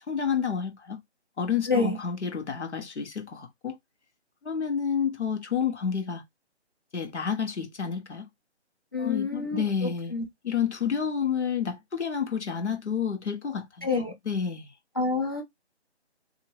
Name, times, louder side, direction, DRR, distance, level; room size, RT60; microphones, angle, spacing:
voice 1, 0.1-1.0 1.4-3.8 4.4-6.2 6.9-8.3 9.0-10.1 10.4-13.9 14.3-14.7, left 7 dB, 80° left, 1.1 m, -29 dB
voice 2, 1.7-2.0 8.9-10.2 13.8-14.1 15.0-15.4, left 3 dB, 20° left, 0.5 m, -28 dB
2.9 x 2.7 x 2.9 m
figure-of-eight pair, 160°, 34 cm